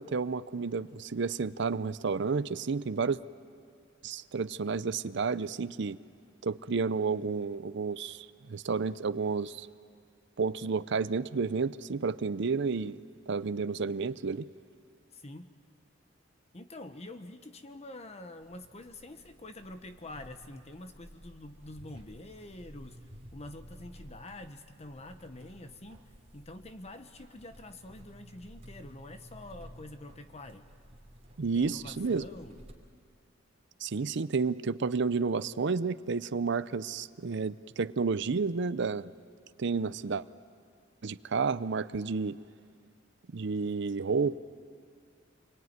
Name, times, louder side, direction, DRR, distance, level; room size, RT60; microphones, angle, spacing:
voice 1, 0.0-3.2 4.0-6.0 6.4-9.7 10.4-14.5 31.4-32.3 33.8-39.1 39.6-40.2 41.0-42.4 43.3-44.4, right 4 dB, 65° right, 15 dB, 0.6 m, -31 dB
voice 2, 15.1-15.5 16.5-23.0 23.3-30.7 31.5-32.6, left 2 dB, 35° left, 8 dB, 1.0 m, -46 dB
sound 1, 18.4-32.7, equal, 35° right, 3.1 m, -53 dB
27.0 x 22.5 x 9.6 m, 2.2 s
head